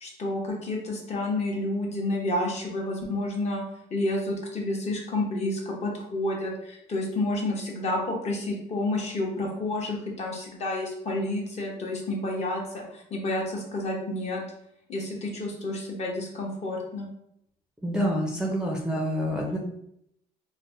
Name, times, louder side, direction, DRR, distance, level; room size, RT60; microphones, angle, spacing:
voice 1, 0.0-3.6 3.9-14.4 14.9-17.1, left 2 dB, 40° left, -1 dB, 0.8 m, -30 dB
voice 2, 17.8-19.6, equal, 5° right, -3 dB, 0.5 m, -27 dB
3.2 x 2.1 x 2.6 m, 0.74 s
cardioid pair, 110°, 17 cm